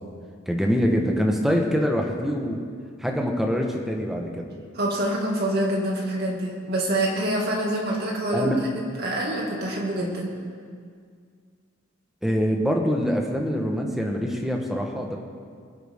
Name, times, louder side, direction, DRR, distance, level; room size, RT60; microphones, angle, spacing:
voice 1, 0.5-2.6 3.0-4.6 8.3-8.6 12.2-15.2, equal, ahead, 1 dB, 1.2 m, -24 dB
voice 2, 4.7-10.3, right 1 dB, 50° right, -1 dB, 2.3 m, -26 dB
22.5 x 8.3 x 3.7 m, 2.1 s
head